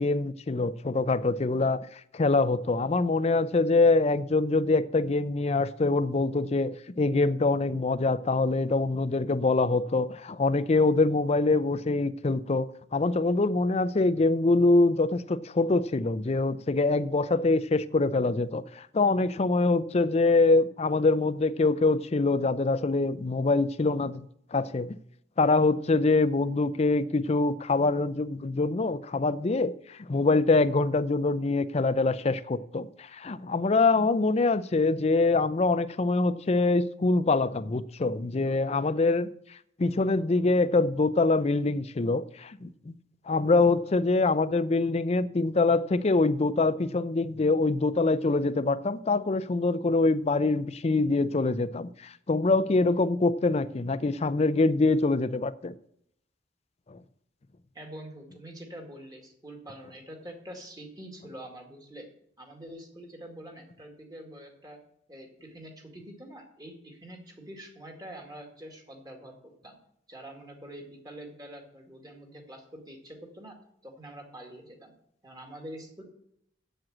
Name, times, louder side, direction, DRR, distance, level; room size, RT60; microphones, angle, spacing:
voice 1, 0.0-24.3 24.5-25.0 25.4-39.3 39.8-42.9 43.3-55.7 56.9-57.0, left 3 dB, 35° left, 0.4 m, -24 dB
voice 2, 57.7-62.1 62.4-64.8 65.1-69.3 69.6-69.7 70.1-73.6 73.8-74.9 75.2-76.0, right 1 dB, 20° right, 2.1 m, -45 dB
7.7 x 7.4 x 7.6 m
head